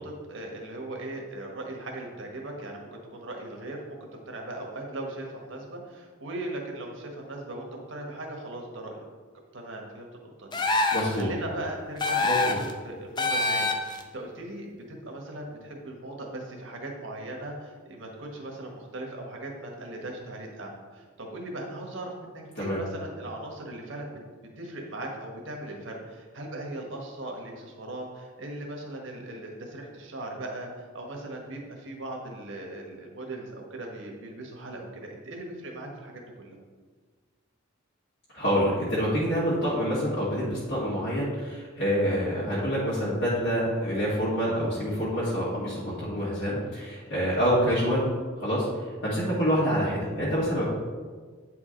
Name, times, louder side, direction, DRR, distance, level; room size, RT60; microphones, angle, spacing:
voice 1, 0.0-4.0 4.3-9.1 9.5-24.2 24.6-36.6, right 1 dB, 65° right, 0 dB, 1.4 m, -39 dB
sound 1, 10.5-11.2 12.0-12.7 13.2-14.0, left 3 dB, 20° left, 0.5 m, -25 dB
voice 2, 10.9-11.3 12.2-12.6 22.6-22.8 38.3-48.1 48.4-48.7 49.0-50.7, equal, 60° left, -9 dB, 1.9 m, -26 dB
9.1 x 4.9 x 3.8 m, 1.5 s
head